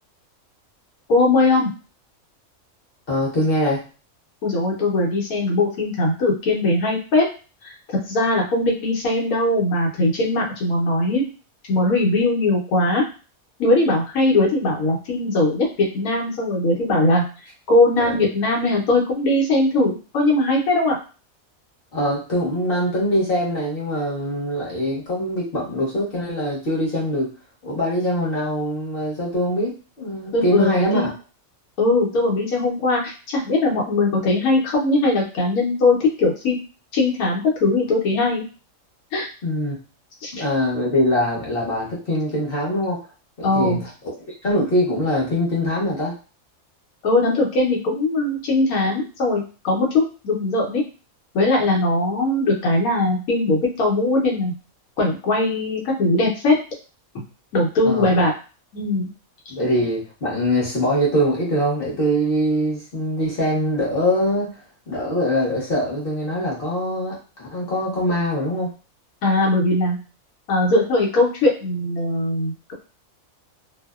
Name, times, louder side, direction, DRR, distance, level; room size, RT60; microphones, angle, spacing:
voice 1, 1.1-1.7 4.4-7.3 7.6-7.7 8.1-11.2 11.7-13.0 13.6-17.2 17.7-21.0 30.3-31.1 31.8-36.6 36.9-38.4 39.1-39.3 40.2-40.3 43.4-43.8 47.0-50.8 51.3-54.5 55.0-56.6 57.1-57.2 57.5-58.3 58.7-59.1 69.2-70.0 70.5-72.7, left 2 dB, 85° left, -1 dB, 1.2 m, -20 dB
voice 2, 3.1-3.8 18.0-18.1 21.9-27.3 27.6-31.1 39.4-39.8 40.3-43.0 43.4-43.8 44.2-46.1 57.8-58.1 59.5-68.7, equal, 45° left, -4 dB, 1.0 m, -23 dB
2.7 x 2.0 x 2.3 m, 0.34 s
omnidirectional pair, 1.5 m